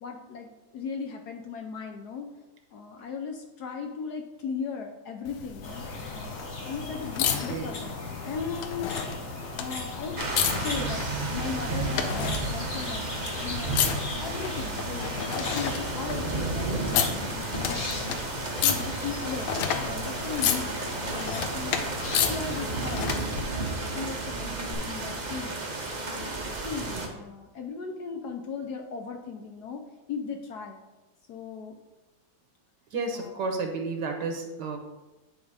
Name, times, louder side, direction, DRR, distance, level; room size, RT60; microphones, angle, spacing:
voice 1, 0.0-2.3 2.7-5.8 6.1-6.4 6.6-9.1 9.6-10.2 10.6-11.0 11.3-13.1 13.3-18.2 18.6-25.5 26.1-29.8 30.1-30.8 31.3-31.8 33.1-33.5, left 5 dB, 70° left, 3 dB, 1.0 m, -37 dB
sound 1, 5.3-23.4 24.7-24.8, left 8 dB, 90° left, 1.5 m, -32 dB
sound 2, 5.6-23.1, left 2 dB, 40° left, 1.3 m, -38 dB
sound 3, 10.2-27.1, right 3 dB, 45° right, 0.5 m, -33 dB
voice 2, 32.9-34.8, right 3 dB, 65° right, 4 dB, 1.4 m, -31 dB
9.7 x 3.5 x 4.7 m, 1.1 s
omnidirectional pair, 2.1 m